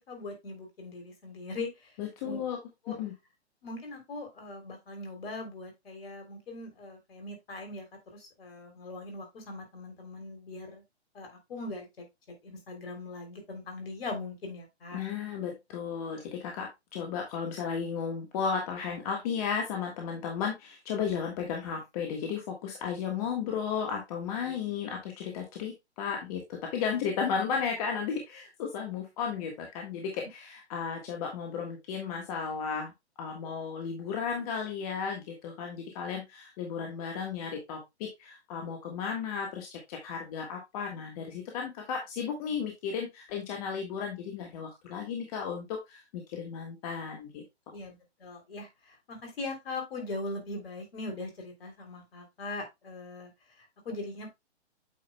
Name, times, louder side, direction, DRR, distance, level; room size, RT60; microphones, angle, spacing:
voice 1, 0.1-2.4 2.8-3.0 3.6-7.8 8.1-10.8 11.1-15.0 47.7-54.3, left 2 dB, 55° left, 4 dB, 3.4 m, -41 dB
voice 2, 2.0-2.6 2.9-3.1 14.9-32.9 33.2-47.4, left 6 dB, 35° left, 1 dB, 1.5 m, -34 dB
8.6 x 6.4 x 2.2 m, 0.21 s
figure-of-eight pair, 130°, 34 cm